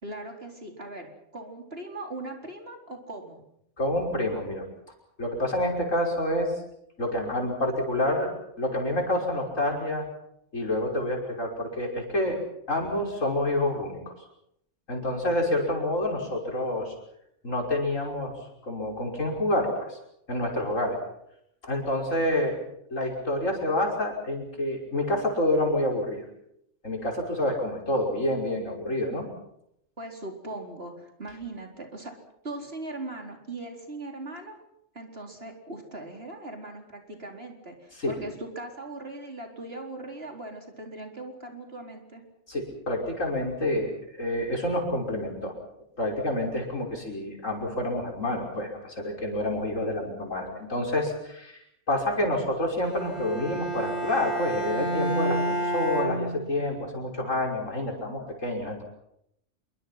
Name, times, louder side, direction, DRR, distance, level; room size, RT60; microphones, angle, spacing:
voice 1, 0.0-3.4 30.0-32.1 32.4-34.6 34.9-42.2, right 2 dB, 50° right, 2 dB, 4.5 m, -39 dB
voice 2, 3.8-4.6 5.2-6.5 7.0-8.3 8.6-10.1 10.5-12.4 12.7-14.1 14.9-16.9 17.4-18.3 18.6-20.0 20.3-21.0 21.6-22.6 22.9-26.2 26.8-29.3 38.0-38.1 42.5-45.5 46.0-51.6 51.9-58.8, left 1 dB, 80° left, 1 dB, 6.1 m, -28 dB
Bowed string instrument, 52.8-56.9, right 1 dB, 55° left, 6.8 m, -30 dB
27.0 x 23.5 x 5.9 m, 0.77 s
omnidirectional pair, 1.3 m